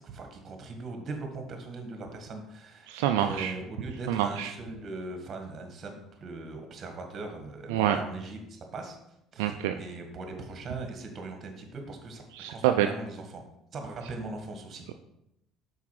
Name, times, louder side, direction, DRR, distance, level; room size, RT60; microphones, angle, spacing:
voice 1, 0.0-2.9 3.2-9.0 9.3-12.2 12.5-13.4 13.7-14.9, right 3 dB, 45° right, 4 dB, 1.6 m, -40 dB
voice 2, 2.9-3.5 4.1-4.5 7.7-8.0 9.4-9.7 12.3-12.9, right 11 dB, 80° right, 6 dB, 0.3 m, -26 dB
5.8 x 4.7 x 4.8 m, 0.82 s
hypercardioid pair, 75°, 0 cm